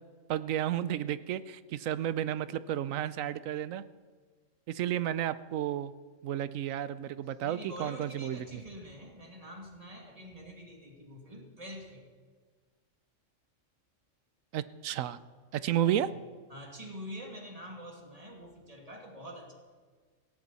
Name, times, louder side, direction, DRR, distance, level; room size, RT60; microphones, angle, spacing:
voice 1, 0.3-3.8 4.7-5.9 6.2-8.6 14.5-15.2 15.5-16.1, right 11 dB, 85° right, 15 dB, 1.1 m, -32 dB
voice 2, 7.4-12.0 15.8-16.0 16.5-19.5, equal, 30° right, 1 dB, 2.5 m, -45 dB
18.0 x 17.0 x 4.1 m, 1.5 s
omnidirectional pair, 1.3 m